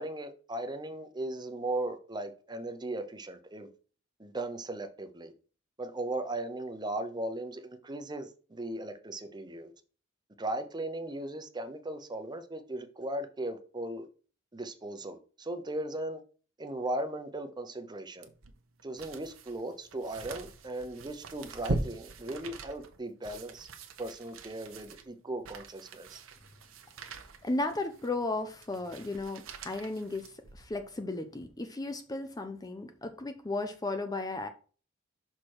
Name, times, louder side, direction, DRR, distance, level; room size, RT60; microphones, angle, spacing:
voice 1, 0.0-3.7 4.2-5.3 5.8-9.7 10.4-14.1 14.5-16.2 16.6-18.3 18.8-23.7 24.0-26.2, right 1 dB, 20° right, 0.7 m, -37 dB
sound 1, 18.2-30.9 31.4-31.5, right 2 dB, 85° right, 0.9 m, -42 dB
voice 2, 27.4-34.5, left 2 dB, 20° left, 0.5 m, -35 dB
6.0 x 4.4 x 4.8 m
head